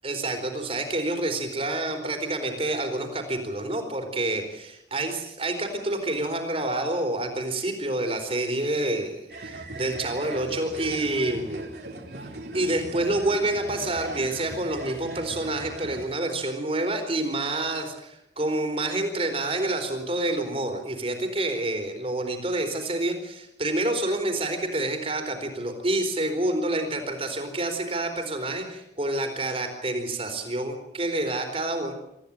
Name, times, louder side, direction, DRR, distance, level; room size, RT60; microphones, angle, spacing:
voice 1, 0.0-11.7 12.5-31.9, right 2 dB, 30° right, 5 dB, 4.3 m, -28 dB
sound 1, 9.3-16.1, right 2 dB, 65° right, 3.9 m, -39 dB
25.5 x 15.0 x 9.1 m, 0.81 s
head